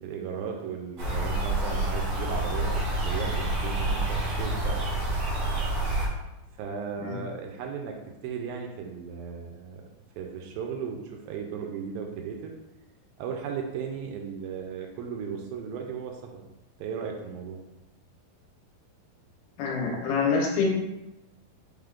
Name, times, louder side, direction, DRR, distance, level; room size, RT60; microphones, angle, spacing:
voice 1, 0.0-4.8 6.6-9.8 10.2-12.5 13.2-16.4 16.8-17.6, right 6 dB, 80° right, 2 dB, 2.2 m, -36 dB
sound 1, 1.0-6.1, right 1 dB, 60° right, 1.6 m, -28 dB
voice 2, 19.6-20.7, left 5 dB, 80° left, -2 dB, 2.7 m, -26 dB
5.7 x 3.5 x 2.4 m, 0.96 s
omnidirectional pair, 4.2 m